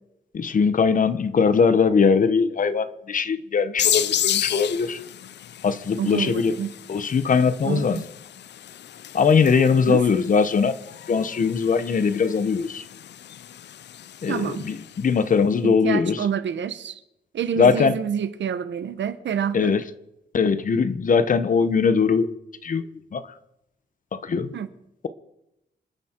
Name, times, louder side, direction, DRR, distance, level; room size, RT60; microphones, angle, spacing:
voice 1, 0.3-5.0 5.6-6.5 6.9-8.0 9.1-10.8 11.1-12.8 14.2-16.2 17.6-18.0 19.5-19.8 20.3-22.3 22.6-22.9 23.1-23.2 24.1-24.5, left 5 dB, 45° left, 0.9 m, -21 dB
sound 1, 3.8-15.1, left 11 dB, 70° left, 0.5 m, -32 dB
voice 2, 6.0-6.8 7.6-8.0 9.9-10.0 14.3-14.7 15.1-15.2 15.6-17.0 17.3-19.8 24.5-24.7, right 8 dB, 85° right, 1.0 m, -28 dB
28.0 x 9.7 x 4.5 m
wide cardioid pair, 170°, 18 cm